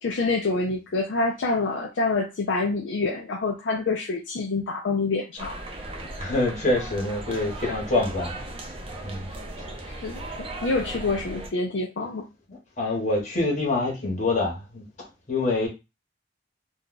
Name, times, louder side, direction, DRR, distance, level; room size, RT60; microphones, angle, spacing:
voice 1, 0.0-5.6 10.0-10.2 10.6-12.2, left 3 dB, 65° left, 0.5 m, -26 dB
sound 1, 5.4-11.5, right 1 dB, 30° right, 0.6 m, -37 dB
voice 2, 6.0-8.3 9.0-9.3 12.5-14.8 15.3-15.7, left 2 dB, 40° left, 1.1 m, -26 dB
2.5 x 2.3 x 3.8 m
head